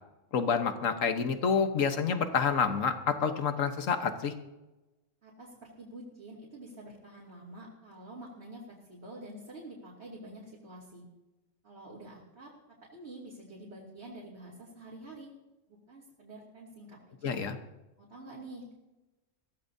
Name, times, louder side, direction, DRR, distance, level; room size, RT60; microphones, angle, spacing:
voice 1, 0.3-4.3 17.2-17.6, left 6 dB, 75° left, 7 dB, 1.5 m, -28 dB
voice 2, 5.2-11.0 11.6-12.5 12.9-15.3 15.7-17.4 18.0-18.7, right 1 dB, 50° right, -6 dB, 3.2 m, -47 dB
22.0 x 15.5 x 2.7 m, 1.1 s
omnidirectional pair, 1.4 m